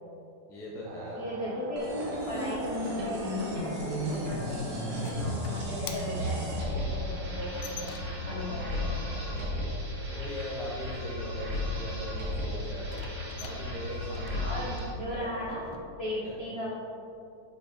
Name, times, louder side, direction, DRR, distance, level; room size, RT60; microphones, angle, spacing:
voice 1, 0.5-1.2 5.9-6.2 9.3-9.6 10.1-12.9 13.3-14.8 15.1-15.3 16.2-16.3, left 1 dB, 5° left, -5 dB, 0.3 m, -40 dB
sound 1, 0.8-9.8, right 4 dB, 80° right, 1.5 m, -47 dB
voice 2, 1.1-2.0 2.3-7.9 8.3-9.3 14.3-15.7 16.0-16.7, equal, 60° left, -6 dB, 0.6 m, -37 dB
sound 2, 1.8-15.0, left 1 dB, 40° right, 1.4 m, -34 dB
sound 3, 3.4-8.4 12.8-15.8, left 7 dB, 90° left, 1.5 m, -47 dB
6.3 x 4.7 x 4.0 m, 2.7 s
omnidirectional pair, 2.3 m